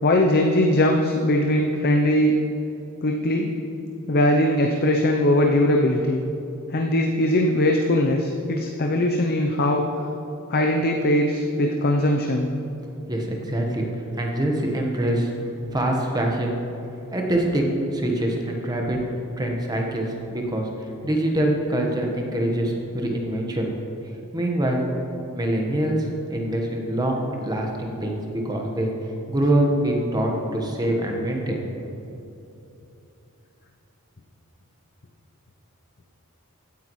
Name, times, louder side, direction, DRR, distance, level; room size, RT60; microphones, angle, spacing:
voice 1, 0.0-2.3 3.0-3.5 4.1-6.2 6.7-9.8 10.5-12.5, left 1 dB, 45° left, 2 dB, 0.6 m, -20 dB
voice 2, 13.1-13.9 14.2-15.3 15.7-16.6 17.1-17.6 17.9-19.0 19.4-20.7 21.0-23.7 24.3-24.8 25.3-28.9 29.3-31.7, right 1 dB, 20° right, 0 dB, 1.2 m, -24 dB
16.0 x 9.4 x 3.2 m, 2.8 s
head